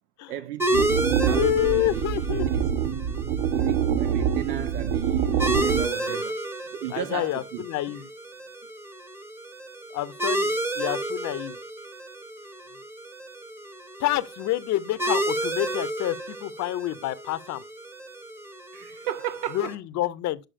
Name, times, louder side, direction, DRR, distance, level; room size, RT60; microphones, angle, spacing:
voice 1, 0.3-2.0 2.4-2.9 3.5-6.4 6.7-7.7 18.7-19.7, right 12 dB, 80° right, 0.6 m, -35 dB
sound 1, 0.6-19.7, right 1 dB, 5° right, 0.8 m, -32 dB
sound 2, 0.7-5.9, right 8 dB, 50° right, 0.9 m, -25 dB
voice 2, 1.3-2.5 5.5-6.2 6.9-8.1 9.9-11.6 14.0-17.6 19.5-20.4, left 15 dB, 40° left, 0.7 m, -28 dB
9.0 x 6.0 x 2.5 m
hypercardioid pair, 80°, 47 cm